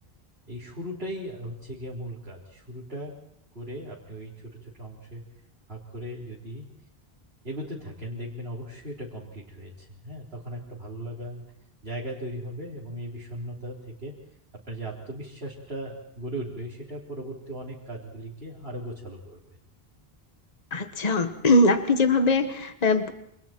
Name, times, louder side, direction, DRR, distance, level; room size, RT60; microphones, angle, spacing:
voice 1, 0.5-3.2 3.5-5.2 5.7-6.7 7.4-11.5 11.8-14.2 14.5-19.4, right 1 dB, 75° right, -6 dB, 4.4 m, -38 dB
voice 2, 20.7-23.1, left 2 dB, 40° left, 8 dB, 1.5 m, -21 dB
29.0 x 28.0 x 4.5 m, 0.72 s
omnidirectional pair, 1.0 m